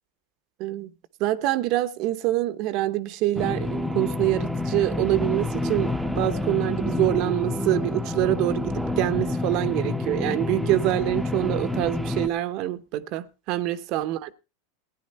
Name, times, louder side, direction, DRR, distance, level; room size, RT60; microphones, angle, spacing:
voice 1, 0.6-0.9 1.2-14.3, right 15 dB, 50° right, 0.8 m, -25 dB
sound 1, 3.4-12.3, left 2 dB, ahead, 0.8 m, -28 dB
15.5 x 10.0 x 4.2 m
supercardioid pair, 140°, 0 cm